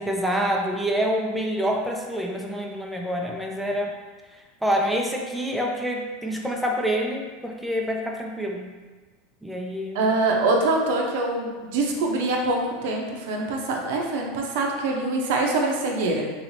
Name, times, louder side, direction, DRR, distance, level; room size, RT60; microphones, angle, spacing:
voice 1, 0.0-3.9 4.3-8.7 9.4-10.0, equal, ahead, 0 dB, 0.4 m, -27 dB
voice 2, 9.9-16.2, right 2 dB, 70° right, 1 dB, 0.6 m, -24 dB
3.0 x 2.7 x 3.1 m, 1.3 s
supercardioid pair, 120°, 0 cm